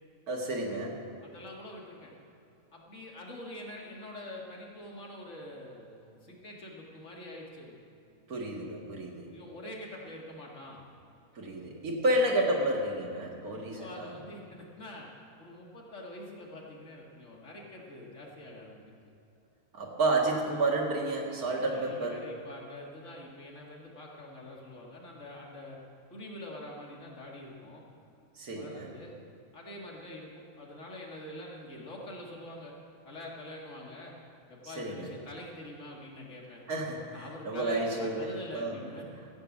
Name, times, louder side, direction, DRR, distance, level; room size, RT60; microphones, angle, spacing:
voice 1, 0.3-1.0 8.3-9.3 11.4-14.1 19.7-22.2 28.4-28.9 34.6-35.1 36.7-38.8, right 2 dB, 75° right, 0 dB, 2.3 m, -31 dB
voice 2, 1.2-2.1 2.7-7.8 9.3-10.8 13.8-15.1 15.4-18.9 21.4-25.8 26.1-27.8 28.5-29.1 29.5-32.8 33.0-34.1 34.5-36.6 37.1-39.3, left 1 dB, 55° left, -2 dB, 2.3 m, -45 dB
14.5 x 6.8 x 8.4 m, 2.7 s
omnidirectional pair, 1.6 m